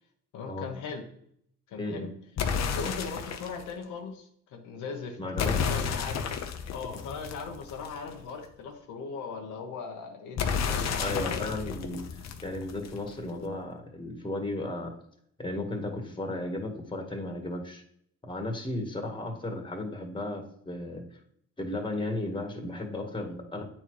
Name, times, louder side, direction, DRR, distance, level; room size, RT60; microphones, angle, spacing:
voice 1, 0.3-1.0 1.7-2.1 2.6-6.4 6.7-11.5, left 5 dB, 85° left, 2 dB, 1.2 m, -39 dB
voice 2, 1.8-2.1 5.2-5.7 11.0-15.0 15.4-17.8 18.2-21.0 21.6-23.6, left 2 dB, 15° left, 3 dB, 1.7 m, -35 dB
sound 1, 2.4-3.6 5.4-8.1 10.4-13.1, left 6 dB, 60° left, 0.9 m, -31 dB
8.6 x 4.4 x 4.8 m, 0.68 s
cardioid pair, 90°, 30 cm